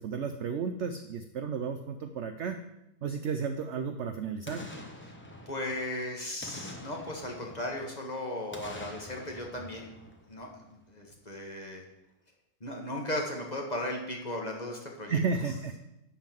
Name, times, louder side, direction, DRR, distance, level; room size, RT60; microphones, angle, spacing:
voice 1, 0.0-2.6 3.0-4.6 15.0-15.7, right 5 dB, 80° right, 8 dB, 0.6 m, -33 dB
Boom, 4.4-6.0 6.4-8.0 8.5-10.8 11.1-11.2, left 1 dB, 10° left, 0.6 m, -46 dB
voice 2, 5.5-9.9 10.3-11.8 12.6-15.2, left 1 dB, 30° left, 1 dB, 1.1 m, -36 dB
11.5 x 3.8 x 7.5 m, 0.88 s
omnidirectional pair, 1.9 m